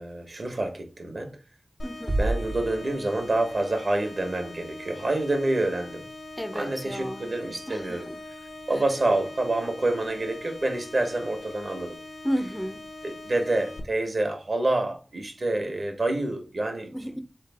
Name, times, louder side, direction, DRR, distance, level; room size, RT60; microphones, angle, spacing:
voice 1, 0.0-1.4 2.2-6.1 6.5-8.1 8.7-12.0 13.0-17.2, right 2 dB, 65° right, 1.0 m, -27 dB
sound 1, 1.8-13.8, left 2 dB, 85° left, 0.7 m, -42 dB
voice 2, 1.8-2.1 6.4-7.2 7.7-8.0 12.2-12.8 16.9-17.2, equal, 5° left, 0.4 m, -32 dB
sound 2, 2.1-4.0, right 1 dB, 45° right, 0.7 m, -30 dB
4.0 x 3.3 x 3.4 m
wide cardioid pair, 65°, 0 cm